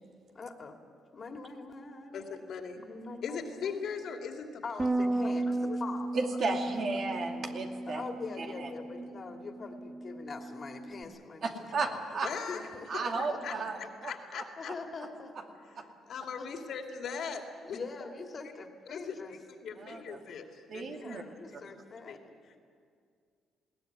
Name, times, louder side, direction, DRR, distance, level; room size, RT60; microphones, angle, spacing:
voice 1, 0.3-0.8 1.1-2.3 2.8-3.8 4.6-6.2 7.9-12.0 12.2-13.6 14.6-15.3 16.4-16.5 17.6-19.3 20.8-22.2, left 4 dB, 40° left, 4 dB, 2.5 m, -43 dB
voice 2, 2.1-2.8 3.2-5.8 12.2-12.7 13.1-14.7 15.7-15.8 16.1-17.8 18.9-21.2 21.5-21.7 22.0-22.2 22.5-22.6, left 6 dB, 65° left, 4 dB, 2.6 m, -40 dB
Bass guitar, 4.8-11.0, right 2 dB, 15° right, 0.9 m, -35 dB
voice 3, 6.1-8.0 8.4-8.7 11.4-12.3 12.9-14.1 15.8-15.9 19.8-20.2 20.7-21.2, right 3 dB, 55° right, 3 dB, 2.5 m, -34 dB
20.5 x 17.0 x 9.6 m, 2.2 s
cardioid pair, 90°, 0 cm